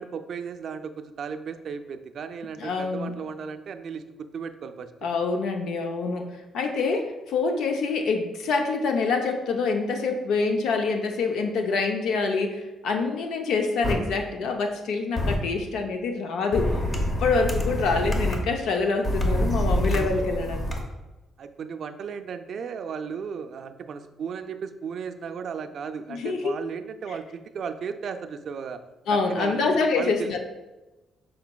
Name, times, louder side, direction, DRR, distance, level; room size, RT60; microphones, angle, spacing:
voice 1, 0.0-4.0 4.3-4.9 19.9-20.1 21.4-28.8 29.1-30.4, right 6 dB, 60° right, 8 dB, 0.3 m, -35 dB
voice 2, 2.6-3.1 5.0-20.7 26.1-26.5 29.1-30.4, left 4 dB, 80° left, 4 dB, 0.4 m, -26 dB
sound 1, 13.8-13.9 15.2-15.4 16.5-18.4 19.0-20.8, left 1 dB, 30° left, 0.8 m, -26 dB
5.8 x 3.7 x 2.2 m, 1.1 s
cardioid pair, 90°, 0 cm